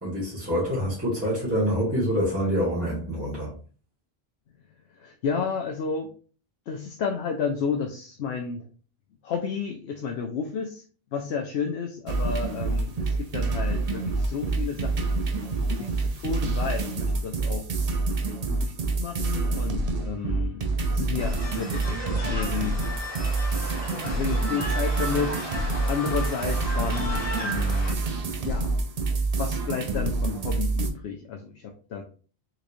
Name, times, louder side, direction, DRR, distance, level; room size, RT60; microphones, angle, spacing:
voice 1, 0.0-3.5, equal, 15° right, 1.6 m, -26 dB
voice 2, 4.9-6.1 6.7-8.6 9.2-10.8 11.1-15.2 15.7-17.7 18.5-22.8 24.0-25.5 25.8-28.0 28.4-28.8 29.4-32.0, left 6 dB, 85° left, 0.9 m, -32 dB
sound 1, 12.1-30.9, right 3 dB, 50° right, 0.6 m, -27 dB
sound 2, 21.2-27.9, equal, 15° left, 1.8 m, -35 dB
3.8 x 3.1 x 2.6 m
omnidirectional pair, 1.0 m